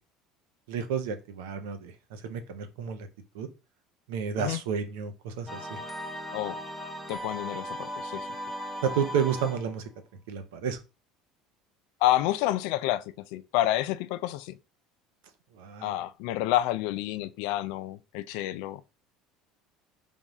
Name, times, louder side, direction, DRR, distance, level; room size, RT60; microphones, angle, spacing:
voice 1, 0.7-3.1 3.3-3.5 4.1-5.8 8.8-9.8 10.3-10.8 15.5-16.0, right 7 dB, 90° right, 0.7 m, -31 dB
sound 1, 5.5-9.8, equal, ahead, 0.7 m, -37 dB
voice 2, 7.1-8.3 12.0-13.0 13.3-14.6 15.8-18.8, left 14 dB, 75° left, 0.3 m, -29 dB
3.5 x 2.4 x 4.1 m
supercardioid pair, 115°, 0 cm